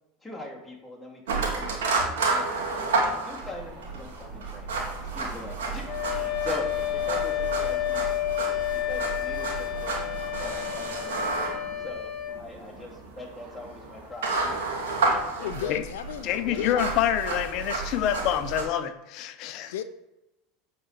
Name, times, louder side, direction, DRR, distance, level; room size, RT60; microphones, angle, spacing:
voice 1, 0.2-4.8 5.1-8.1 8.5-10.1 10.4-11.1 11.8-14.6 15.1-15.7 16.3-16.9, left 1 dB, 5° left, 3.0 m, -42 dB
sound 1, 1.3-18.6, right 3 dB, 90° right, 2.0 m, -31 dB
sound 2, 1.9-14.1, right 3 dB, 50° right, 2.2 m, -49 dB
Wind instrument woodwind instrument, 5.9-12.4, left 14 dB, 35° left, 2.2 m, -30 dB
voice 2, 15.3-16.3 16.6-16.8 19.7-19.8, left 9 dB, 85° left, 0.7 m, -34 dB
voice 3, 16.2-19.7, left 10 dB, 55° left, 0.9 m, -27 dB
8.5 x 4.3 x 6.8 m
supercardioid pair, 110°, 0 cm